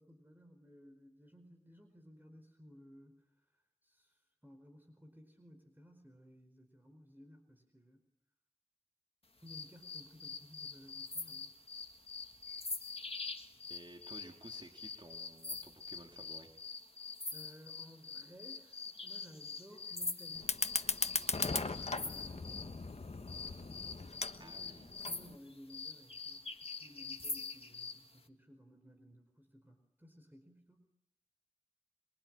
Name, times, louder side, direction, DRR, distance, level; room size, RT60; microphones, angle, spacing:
voice 1, 0.0-3.2 3.8-8.0 9.4-11.5 17.3-20.6 21.4-22.8 23.1-30.9, equal, 15° right, 5 dB, 4.8 m, -58 dB
sound 1, 9.5-22.7 23.3-28.0, left 4 dB, 60° left, 2.0 m, -44 dB
voice 2, 13.7-16.5 24.4-25.0, right 1 dB, 50° right, 2 dB, 3.6 m, -54 dB
Fire, 20.4-25.4, left 3 dB, 85° left, 1.3 m, -38 dB
27.5 x 23.0 x 9.0 m, 0.79 s
wide cardioid pair, 45°, 11 cm